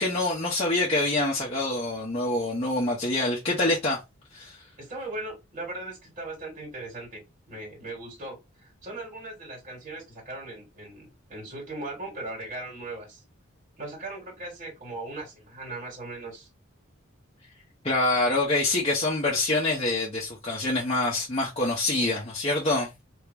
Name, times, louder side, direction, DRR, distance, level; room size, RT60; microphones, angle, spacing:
voice 1, 0.0-4.0 4.3-4.6 17.8-22.9, left 2 dB, 30° left, 0.9 m, -26 dB
voice 2, 4.8-13.2 13.8-16.5, right 2 dB, 40° right, 2.5 m, -39 dB
3.4 x 2.8 x 3.4 m
head